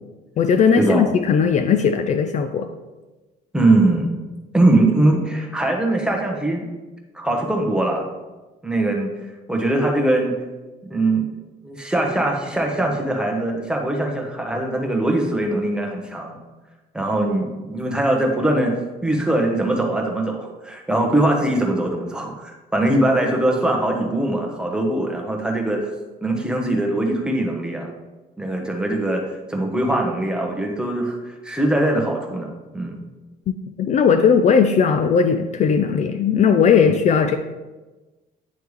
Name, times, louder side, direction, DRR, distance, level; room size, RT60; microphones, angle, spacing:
voice 1, 0.4-2.7 33.8-37.4, left 6 dB, 45° left, 7 dB, 0.4 m, -17 dB
voice 2, 3.5-4.1 4.5-6.7 7.1-8.1 8.6-9.1 9.5-10.4 10.9-11.3 11.6-16.4 16.9-18.7 19.0-25.9 26.2-27.9 28.4-29.2 29.5-33.0, right 1 dB, 5° right, 1 dB, 1.0 m, -21 dB
9.5 x 3.4 x 3.2 m, 1.2 s
cardioid pair, 110°, 17 cm